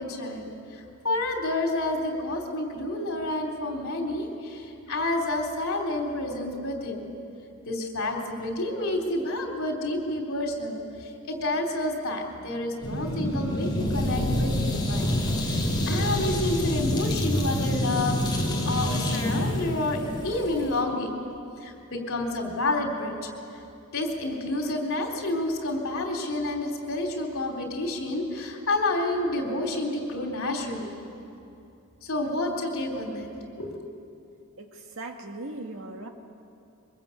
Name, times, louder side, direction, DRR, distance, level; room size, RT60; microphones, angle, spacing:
voice 1, 0.0-7.1 7.7-15.2 15.5-21.2 21.6-23.1 23.9-31.0 32.0-33.3 33.6-33.9, left 2 dB, 70° left, 2 dB, 3.5 m, -29 dB
sound 1, 12.8-20.8, left 1 dB, 20° left, 3.4 m, -27 dB
voice 2, 35.0-36.1, right 2 dB, 65° right, 3 dB, 2.2 m, -38 dB
23.5 x 21.5 x 8.4 m, 2.6 s
head